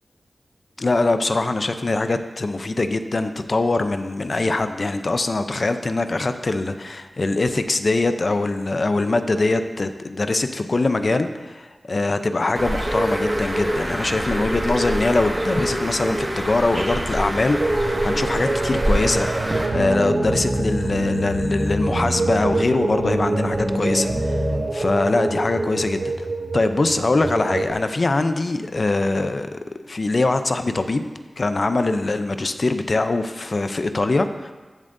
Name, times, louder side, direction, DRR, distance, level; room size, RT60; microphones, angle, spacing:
voice 1, 0.8-19.3 19.7-24.4 24.7-26.3 26.5-29.6 29.9-31.0 31.4-34.5, left 2 dB, 55° left, 9 dB, 0.6 m, -22 dB
Bird, 12.6-19.7, right 1 dB, 25° right, 1.7 m, -25 dB
sound 1, 17.6-27.7, right 2 dB, 45° right, 0.5 m, -27 dB
sound 2, 19.4-24.6, equal, 90° right, 2.9 m, -27 dB
14.5 x 7.2 x 2.7 m, 1.3 s
wide cardioid pair, 60°, 0 cm